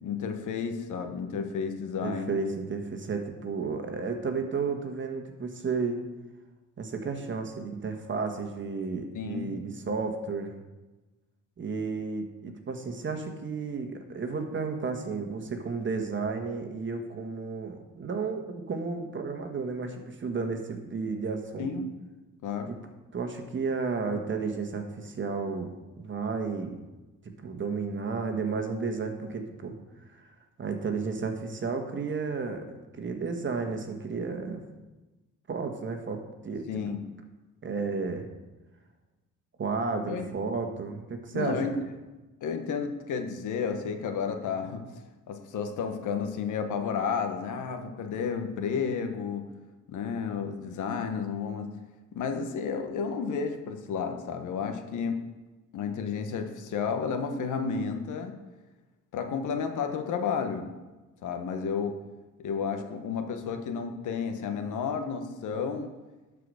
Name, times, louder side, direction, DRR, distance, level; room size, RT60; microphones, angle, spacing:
voice 1, 0.0-2.3 9.1-9.5 21.6-21.9 22.4-22.7 36.7-37.0 40.1-40.3 41.3-41.7 42.4-44.8 45.3-49.4 49.9-51.7 52.1-55.2 55.7-58.4 59.1-60.7 61.2-62.0 62.4-65.9, left 6 dB, 80° left, 6 dB, 1.3 m, -32 dB
voice 2, 2.0-6.0 6.8-10.5 11.6-21.7 23.1-26.8 27.4-29.8 30.2-30.3 30.6-32.6 33.0-34.7 35.5-36.8 37.6-38.3 39.6-41.7, right 4 dB, 40° right, 5 dB, 1.5 m, -32 dB
11.5 x 5.0 x 6.5 m, 1.1 s
cardioid pair, 90°, 30 cm